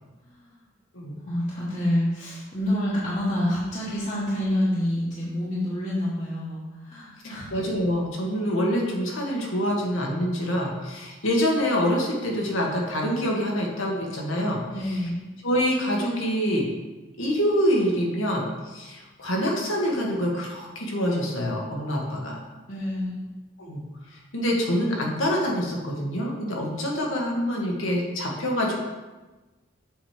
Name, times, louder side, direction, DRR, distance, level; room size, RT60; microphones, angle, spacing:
voice 1, 0.2-0.6 1.1-7.5 14.7-15.2 22.0-23.2, left 1 dB, 35° left, -8 dB, 1.4 m, -28 dB
voice 2, 7.5-14.6 15.4-16.7 17.2-22.4 23.6-23.8 24.1-28.8, equal, 75° left, -1 dB, 1.6 m, -26 dB
7.2 x 5.0 x 4.9 m, 1.2 s
head